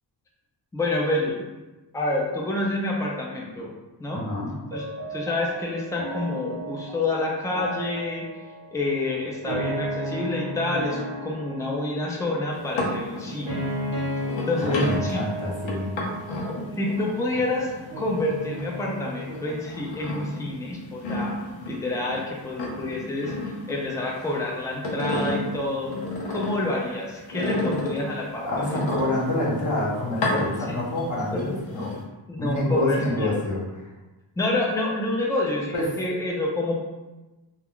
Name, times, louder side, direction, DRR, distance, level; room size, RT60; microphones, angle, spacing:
voice 1, 0.7-1.4 1.9-3.7 4.0-4.2 4.7-4.8 5.1-8.3 8.7-13.6 14.5-14.7 15.0-15.2 16.8-17.7 18.0-21.3 21.7-26.0 26.3-28.8 30.7-30.8 31.3-31.4 32.3-33.3 34.4-36.8, left 2 dB, 5° left, -2 dB, 0.5 m, -28 dB
voice 2, 4.1-4.5 14.6-15.9 28.5-31.9 32.4-33.6 35.7-35.9, left 1 dB, 40° left, -4 dB, 0.9 m, -26 dB
sound 1, 4.7-19.7, equal, 50° right, 0.9 m, -35 dB
sound 2, 12.5-18.9 19.3-22.2 22.5-24.3 24.6-26.8 27.3-29.5 30.1-31.0 31.4-32.0, left 1 dB, 85° left, 0.7 m, -32 dB
2.3 x 2.2 x 3.6 m, 1.1 s
cardioid pair, 70°, 45 cm